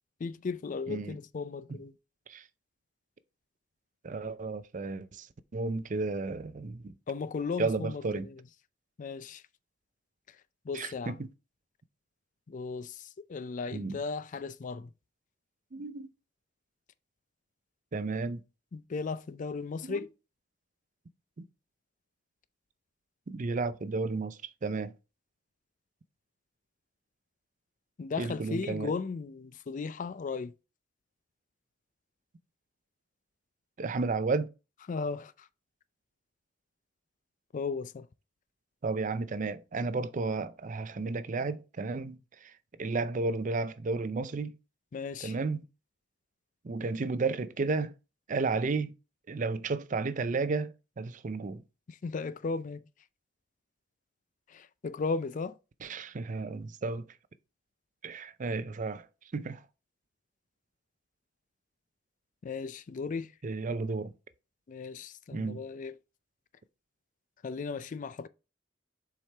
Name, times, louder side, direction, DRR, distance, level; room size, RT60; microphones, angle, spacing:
voice 1, 0.2-1.9 7.1-8.4 9.0-9.4 10.7-11.2 12.5-14.9 18.7-20.1 28.0-30.5 34.9-35.5 37.5-38.1 44.9-45.4 51.9-52.8 54.5-55.6 62.4-63.3 64.7-66.0 67.4-68.3, left 4 dB, 40° left, 0.4 m, -36 dB
voice 2, 0.9-1.2 1.7-1.8 2.3-2.4 4.0-5.3 5.5-6.9 7.6-8.3 10.7-11.3 13.7-14.0 15.7-16.1 17.9-18.4 19.8-20.0 23.3-24.9 28.2-28.9 33.8-34.5 38.8-42.5 42.8-44.5 45.2-45.6 46.6-47.9 48.3-48.9 49.3-51.6 55.8-57.1 58.0-59.1 59.3-59.6 63.4-64.1 65.3-65.6, right 3 dB, 45° right, 0.5 m, -32 dB
7.3 x 4.9 x 3.3 m
head